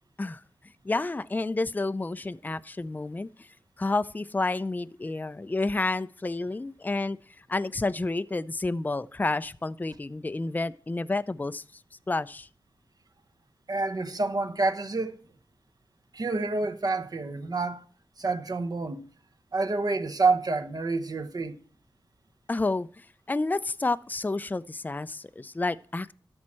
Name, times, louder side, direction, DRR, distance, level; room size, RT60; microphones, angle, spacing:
voice 1, 0.8-3.5 3.8-11.8 12.1-12.5 22.5-26.1, left 2 dB, 20° left, 0.4 m, -30 dB
voice 2, 13.7-15.2 16.1-17.8 18.2-19.0 19.5-21.6, right 3 dB, 45° right, 1.0 m, -28 dB
12.5 x 4.3 x 7.4 m
cardioid pair, 65°, 9 cm